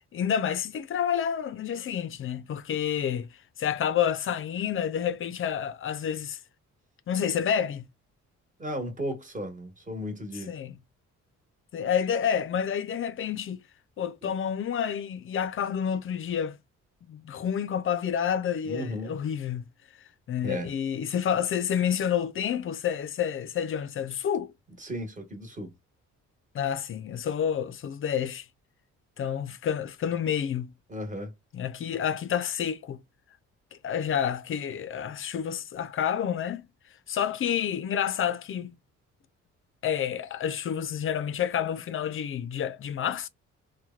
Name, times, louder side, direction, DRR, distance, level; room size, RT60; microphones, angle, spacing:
voice 1, 0.1-3.3 3.6-6.4 7.1-7.9 10.5-10.7 11.7-13.6 14.0-16.6 17.1-19.7 20.3-24.5 26.5-28.5 29.2-30.7 31.5-33.0 33.7-36.6 37.1-38.7 39.8-43.3, left 8 dB, 45° left, 0.4 m, -29 dB
voice 2, 8.6-10.5 14.2-14.3 18.6-19.1 20.4-20.7 24.8-25.7 30.9-31.3, equal, 25° right, 1.2 m, -35 dB
3.0 x 2.2 x 2.3 m
cardioid pair, 90°, 30 cm